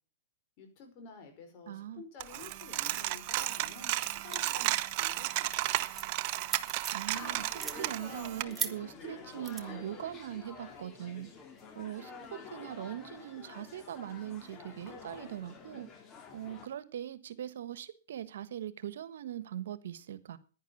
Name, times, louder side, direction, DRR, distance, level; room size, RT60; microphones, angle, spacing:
voice 1, 0.6-5.9, left 5 dB, 45° left, 5.0 m, -51 dB
voice 2, 1.7-2.0 6.9-7.5 7.8-11.3 11.7-12.1 12.5-15.9 16.3-20.4, right 11 dB, 75° right, 1.3 m, -41 dB
Coin (dropping), 2.2-8.4, right 16 dB, 45° right, 0.9 m, -33 dB
sound 1, 4.3-4.7 5.0-5.2 5.5-7.1 7.5-7.8 8.5-8.7 9.4-9.6, right 6 dB, 15° right, 1.2 m, -37 dB
sound 2, 7.1-16.7, left 5 dB, 30° left, 2.9 m, -48 dB
10.5 x 10.5 x 7.1 m
hypercardioid pair, 130°, 0 cm